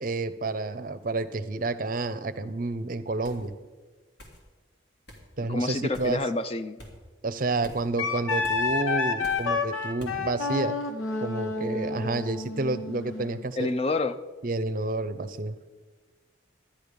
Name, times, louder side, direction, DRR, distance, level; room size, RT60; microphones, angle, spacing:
voice 1, 0.0-3.5 5.4-6.2 7.2-10.8 11.2-13.7 14.4-15.5, right 2 dB, 45° right, 12 dB, 0.6 m, -30 dB
sound 1, 3.2-3.5 4.2-4.4 5.1-5.3 5.9-6.2 6.8-7.0 7.6-7.9 8.4-8.6 9.2-9.5 10.0-10.2, equal, 55° left, 2.3 m, -45 dB
voice 2, 5.5-6.8 13.6-14.2, left 2 dB, 30° left, 11 dB, 0.4 m, -28 dB
Wind instrument woodwind instrument, 8.0-13.4, left 4 dB, 90° left, 1.1 m, -29 dB
12.5 x 10.0 x 5.2 m, 1.3 s
head